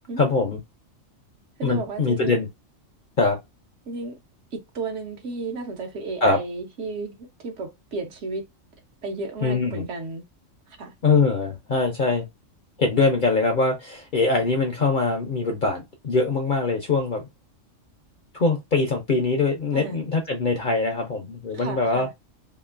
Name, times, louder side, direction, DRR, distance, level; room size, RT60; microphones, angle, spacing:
voice 1, 0.2-0.6 1.6-2.5 3.2-3.4 6.2-6.4 9.4-9.9 11.0-12.3 12.8-17.3 18.3-22.1, left 3 dB, 55° left, 0.6 m, -22 dB
voice 2, 1.6-2.4 3.9-4.2 4.5-7.2 7.4-8.5 9.0-10.2 10.8-10.9 19.7-20.0 21.5-22.1, right 3 dB, 65° right, 1.1 m, -33 dB
2.9 x 2.5 x 2.4 m
omnidirectional pair, 1.4 m